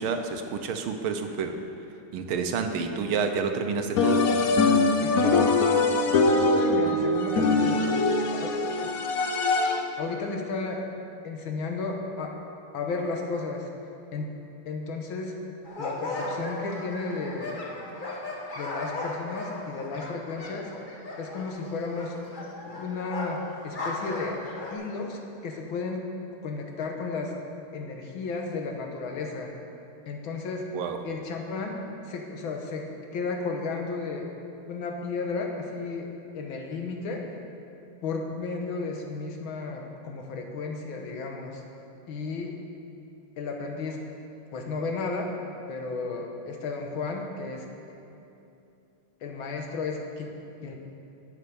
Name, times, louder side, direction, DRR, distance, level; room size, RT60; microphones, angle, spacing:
voice 1, 0.0-1.6 2.1-4.3 30.7-31.0, right 5 dB, 75° right, 6 dB, 1.6 m, -29 dB
sound 1, 4.0-10.0, left 3 dB, 90° left, 0.7 m, -23 dB
voice 2, 5.0-5.8 6.1-7.9 8.2-8.9 10.0-10.8 11.2-12.3 12.7-13.7 14.1-14.3 14.6-15.3 15.8-17.6 18.5-20.7 21.2-22.1 22.6-24.4 24.7-26.1 26.4-27.3 27.7-29.5 30.1-30.6 31.0-32.8 33.1-34.3 34.7-36.1 36.3-37.2 38.0-41.6 42.1-42.5 43.4-44.0 44.5-45.3 45.7-47.7 49.2-50.3 50.6-50.8, left 4 dB, 65° left, 2 dB, 1.9 m, -33 dB
sound 2, 15.6-24.7, left 2 dB, 30° left, 1.1 m, -36 dB
9.6 x 8.3 x 6.9 m, 2.7 s
omnidirectional pair, 2.4 m